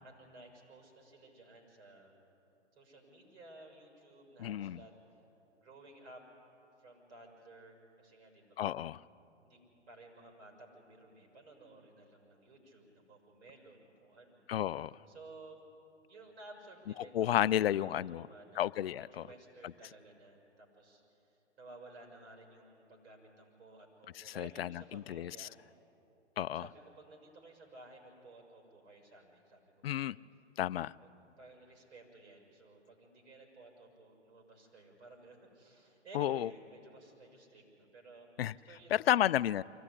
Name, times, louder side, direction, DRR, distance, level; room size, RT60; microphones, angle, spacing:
voice 1, 0.0-2.3 2.7-4.9 5.6-6.2 6.8-8.9 9.4-9.6 9.9-14.4 15.1-15.6 16.1-25.5 26.4-30.0 31.0-39.3, right 2 dB, 65° right, 0 dB, 6.4 m, -56 dB
voice 2, 4.4-4.8 8.6-9.0 14.5-14.9 17.1-18.3 18.6-19.3 24.2-25.5 26.4-26.7 29.8-30.2 30.6-30.9 36.1-36.5 38.4-38.5 38.9-39.6, left 11 dB, 55° left, 18 dB, 0.5 m, -32 dB
24.0 x 15.5 x 9.8 m, 2.9 s
figure-of-eight pair, 125°, 35 cm